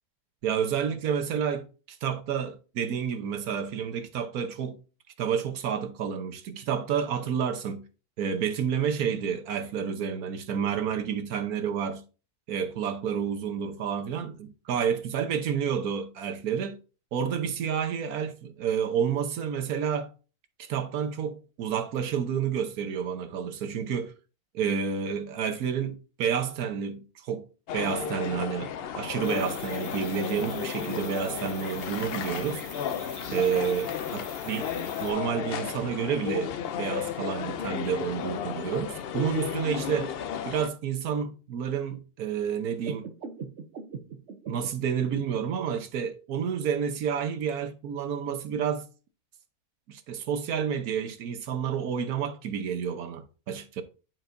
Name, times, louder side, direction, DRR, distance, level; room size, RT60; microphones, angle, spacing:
voice 1, 0.4-4.8 5.2-7.8 8.2-12.0 12.5-16.8 17.1-20.1 20.6-24.1 24.5-27.4 27.7-32.6 33.3-34.7 35.0-36.5 36.8-40.1 40.5-43.1 44.5-48.9 49.9-53.8, right 7 dB, 75° right, 1.3 m, -30 dB
sound 1, 27.7-40.7, left 8 dB, 90° left, 0.5 m, -34 dB
sound 2, 29.2-35.1, left 1 dB, 25° left, 1.6 m, -44 dB
sound 3, 42.8-45.8, right 5 dB, 50° right, 1.0 m, -40 dB
10.5 x 4.4 x 2.6 m
omnidirectional pair, 1.6 m